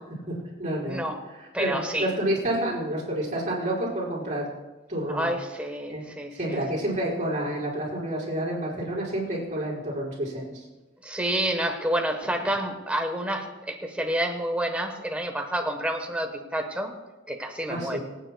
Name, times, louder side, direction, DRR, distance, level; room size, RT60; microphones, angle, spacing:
voice 1, 0.6-1.0 1.4-4.5 4.9-5.3 5.9-6.0 6.4-10.6 17.7-18.0, right 1 dB, 35° right, -6 dB, 4.9 m, -29 dB
voice 2, 1.5-2.1 5.1-6.6 11.0-16.9 17.3-18.0, right 1 dB, 5° right, 3 dB, 1.1 m, -29 dB
27.0 x 9.2 x 2.3 m, 1.1 s
head